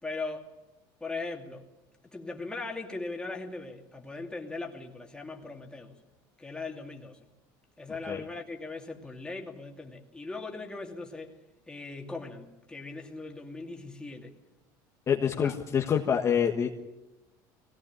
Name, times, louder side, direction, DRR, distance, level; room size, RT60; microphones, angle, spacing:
voice 1, 0.0-0.5 1.0-1.6 2.1-5.9 6.4-7.2 7.8-11.4 11.7-14.3 15.2-15.5, left 3 dB, 10° left, 2.7 m, -39 dB
voice 2, 15.1-16.7, left 7 dB, 30° left, 1.5 m, -26 dB
22.5 x 18.0 x 9.0 m
cardioid pair, 130°, 9 cm